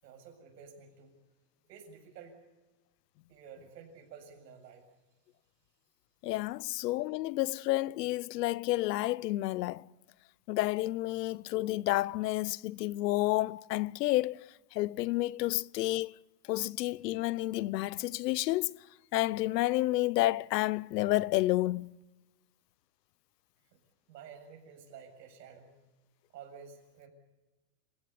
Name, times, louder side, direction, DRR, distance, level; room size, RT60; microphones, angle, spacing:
voice 1, 0.0-1.2 1.7-2.4 3.3-4.9 23.6-23.8 24.1-25.7 26.3-27.1, right 6 dB, 85° right, 7.3 m, -51 dB
voice 2, 6.2-9.9 10.5-16.1 16.5-18.8 19.1-21.9, left 17 dB, 80° left, 0.8 m, -30 dB
28.0 x 16.5 x 8.3 m
supercardioid pair, 170°, 48 cm